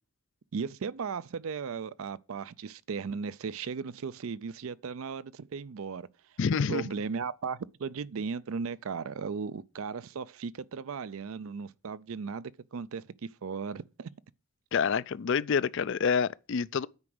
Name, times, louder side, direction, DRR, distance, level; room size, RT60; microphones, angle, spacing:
voice 1, 0.5-6.1 6.7-14.1, right 5 dB, 65° right, 0.4 m, -36 dB
voice 2, 6.4-6.9 14.7-16.9, left 6 dB, 55° left, 0.4 m, -27 dB
9.6 x 4.9 x 7.7 m
head